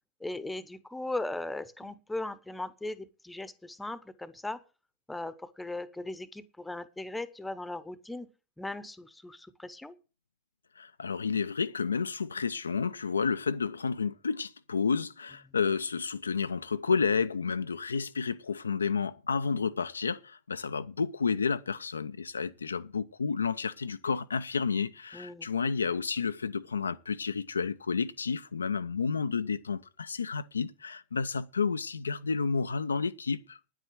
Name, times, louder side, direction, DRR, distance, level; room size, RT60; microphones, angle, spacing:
voice 1, 0.2-4.6 5.1-8.3 8.6-9.9 25.1-25.5, left 2 dB, 5° left, 1.0 m, -38 dB
voice 2, 10.8-33.6, left 5 dB, 75° left, 0.6 m, -31 dB
10.5 x 8.2 x 7.8 m
figure-of-eight pair, 90°, 0 cm